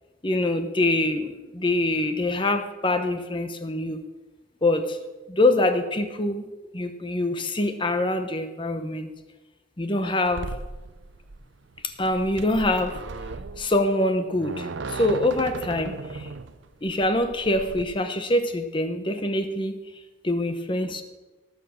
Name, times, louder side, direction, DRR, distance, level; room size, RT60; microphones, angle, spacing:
voice 1, 0.2-4.0 4.6-5.0 5.3-6.5 6.7-9.1 9.8-10.5 11.8-13.0 13.6-16.3 16.8-19.8 20.2-21.0, left 1 dB, 25° left, 8 dB, 0.8 m, -24 dB
sound 1, 10.2-17.8, right 3 dB, 65° right, 0.6 m, -37 dB
18.0 x 7.0 x 6.4 m, 1.2 s
head